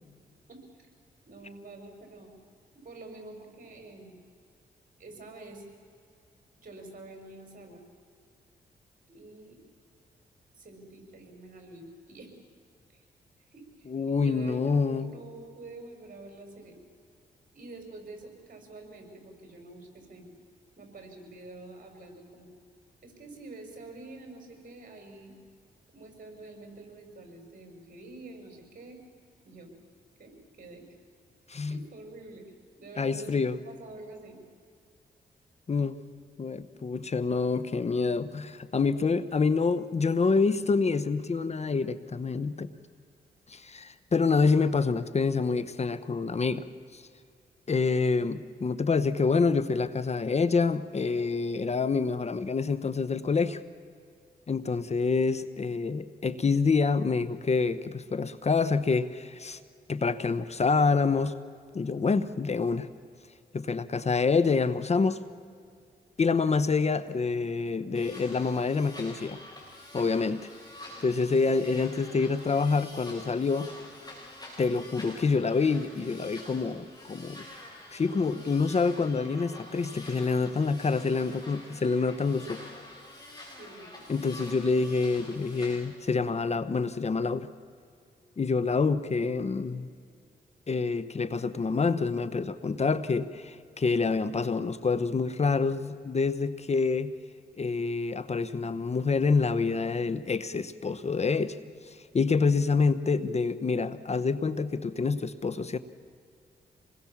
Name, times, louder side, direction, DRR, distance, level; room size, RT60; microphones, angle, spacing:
voice 1, 0.5-0.9 1.3-2.3 2.7-4.1 5.0-5.7 6.6-7.9 9.1-9.6 10.5-12.3 12.9-13.0 13.4-16.8 17.5-20.3 20.8-22.5 23.0-25.3 25.9-29.0 29.4-29.7 30.2-30.9 31.7-32.4 32.8-34.4 71.3-71.8 83.6-84.1, right 2 dB, 55° right, 4 dB, 6.2 m, -47 dB
voice 2, 13.9-15.1 31.5-31.8 33.0-33.6 35.7-36.0 36.4-42.7 43.5-46.7 46.9-47.0 47.7-53.6 54.5-59.6 59.9-61.4 61.7-62.9 63.5-65.2 66.2-69.4 69.9-70.5 71.0-73.7 74.6-77.5 77.9-82.6 84.1-87.5 88.4-89.9 90.7-97.1 97.6-101.6 101.8-105.8, left 4 dB, 40° left, 14 dB, 1.0 m, -27 dB
sound 1, 67.9-85.8, left 1 dB, 25° left, 7.4 m, -47 dB
27.0 x 21.0 x 7.4 m, 2.3 s
cardioid pair, 70°, 17 cm